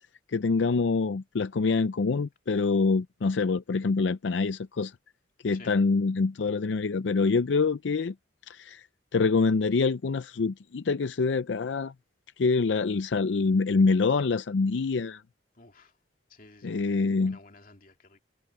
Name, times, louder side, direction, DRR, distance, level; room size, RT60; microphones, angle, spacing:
voice 1, 0.3-4.9 5.4-8.1 8.5-8.8 9.1-11.9 12.4-15.2 16.6-17.4, left 4 dB, 85° left, 0.5 m, -25 dB
voice 2, 5.5-5.8 15.6-15.9 16.3-16.9 17.2-18.2, left 3 dB, 50° left, 2.7 m, -53 dB
head